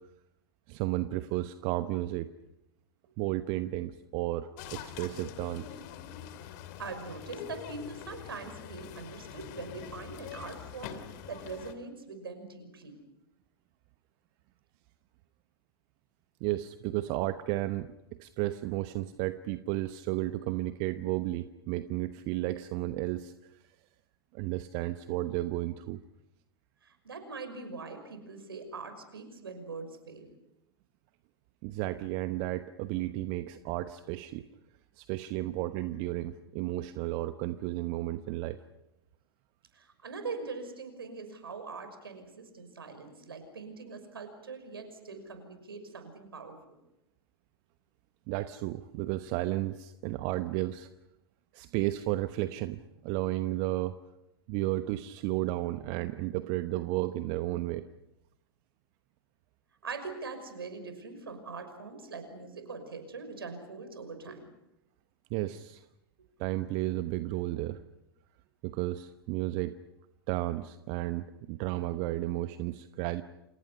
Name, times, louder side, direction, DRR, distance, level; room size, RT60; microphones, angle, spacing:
voice 1, 0.7-2.3 3.2-5.8 16.4-17.9 18.2-23.6 24.3-26.0 31.6-34.4 35.0-38.6 48.3-50.9 51.5-54.0 54.5-57.8 65.3-65.9 66.4-67.8 68.6-69.7 70.3-73.2, right 16 dB, 40° right, 12 dB, 1.0 m, -33 dB
sound 1, 4.6-11.7, left 10 dB, 45° left, 2.7 m, -45 dB
voice 2, 6.4-13.0 26.8-30.3 39.7-46.8 59.8-64.5, right 4 dB, 70° right, 8 dB, 5.9 m, -42 dB
29.5 x 28.0 x 5.7 m, 0.89 s
figure-of-eight pair, 95°, 13 cm